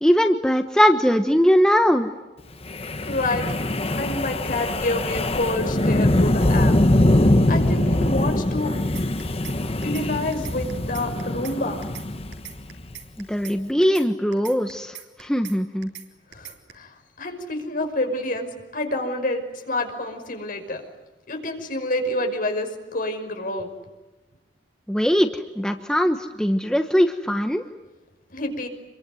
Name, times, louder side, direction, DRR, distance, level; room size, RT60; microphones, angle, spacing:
voice 1, 0.0-2.1 13.2-15.9 24.9-27.6, equal, 5° left, 6 dB, 1.2 m, -20 dB
Wind, 2.7-12.9, left 1 dB, 35° left, 1.2 m, -22 dB
voice 2, 3.0-3.5 4.0-6.8 7.5-8.7 9.8-11.8 16.3-20.8 21.3-23.7 28.3-28.7, left 1 dB, 50° left, 4 dB, 5.6 m, -28 dB
sound 1, 8.9-9.6 9.8-10.1 10.3-11.6 11.8-12.1 12.3-13.6 13.8-14.1 14.3-15.6 15.8-16.1 16.3-16.7, right 10 dB, 70° right, 4.0 m, -40 dB
27.5 x 23.0 x 9.4 m, 1.2 s
head